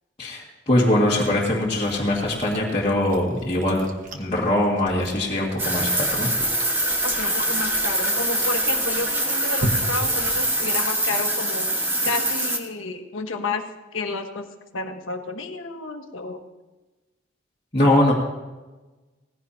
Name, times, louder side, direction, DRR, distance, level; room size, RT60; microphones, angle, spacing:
voice 1, 0.2-3.9 4.2-6.3 17.7-18.1, left 1 dB, 25° left, -8 dB, 2.0 m, -22 dB
Chewing mastication, 1.0-11.1, right 1 dB, 40° right, 1.3 m, -37 dB
sound 1, 5.6-12.6, right 1 dB, 10° right, 1.4 m, -24 dB
voice 2, 7.0-11.7 12.0-13.7 13.9-14.5 14.7-16.4, left 3 dB, 80° left, 5 dB, 1.4 m, -31 dB
18.0 x 15.0 x 2.8 m, 1.2 s
head